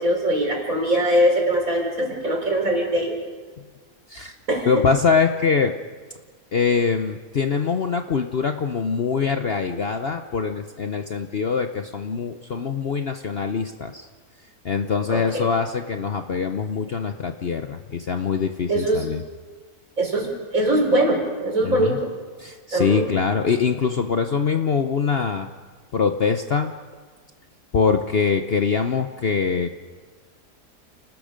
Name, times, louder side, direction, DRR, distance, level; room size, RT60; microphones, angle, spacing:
voice 1, 0.0-3.2 4.5-4.8 15.1-15.5 18.7-19.1 20.0-22.1 22.7-23.1, right 1 dB, 55° right, 1 dB, 4.7 m, -22 dB
voice 2, 4.7-5.7 6.5-14.1 14.6-19.2 21.6-22.0 22.4-25.5 25.9-26.7 27.7-29.8, left 5 dB, 50° left, 6 dB, 0.9 m, -23 dB
29.5 x 19.5 x 5.1 m, 1.5 s
omnidirectional pair, 1.7 m